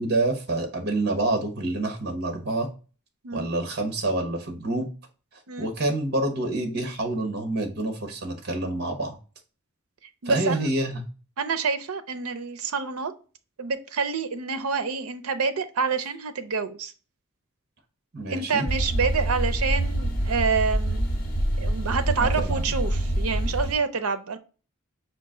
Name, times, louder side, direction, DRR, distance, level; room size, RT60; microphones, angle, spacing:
voice 1, 0.0-2.7 3.3-4.9 5.6-9.2 10.2-11.1 18.1-18.7 22.1-22.6, right 2 dB, 45° right, 1.1 m, -27 dB
voice 2, 10.2-10.7 11.4-13.1 13.6-16.9 18.3-21.0 21.6-24.4, right 5 dB, 80° right, 0.6 m, -27 dB
sound 1, 18.7-23.7, right 1 dB, 40° left, 1.4 m, -26 dB
5.1 x 2.5 x 3.7 m
head